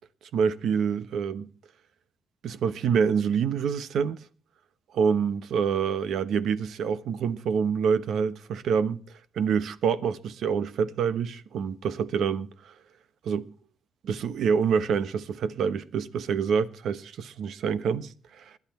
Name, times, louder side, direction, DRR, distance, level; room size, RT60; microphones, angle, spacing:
voice 1, 0.3-1.5 2.4-4.2 4.9-9.0 9.3-12.7 13.2-13.5 14.0-18.4, right 6 dB, 70° right, 1.1 m, -26 dB
21.0 x 11.5 x 4.4 m
cardioid pair, 90°, 0 cm